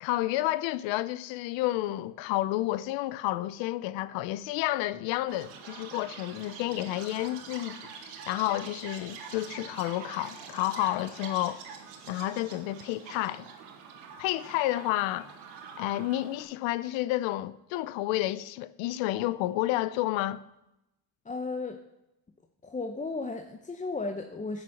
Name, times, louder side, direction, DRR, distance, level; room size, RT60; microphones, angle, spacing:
voice 1, 0.0-7.8 8.3-11.6 12.1-13.5 14.2-15.4 15.8-20.4, left 16 dB, 80° left, 0.6 m, -30 dB
Chirp tweet, 5.3-16.4, right 6 dB, 90° right, 1.8 m, -45 dB
voice 2, 21.2-21.8 22.6-24.6, left 3 dB, 15° left, 0.8 m, -34 dB
10.5 x 6.5 x 7.2 m
supercardioid pair, 90°, 45 cm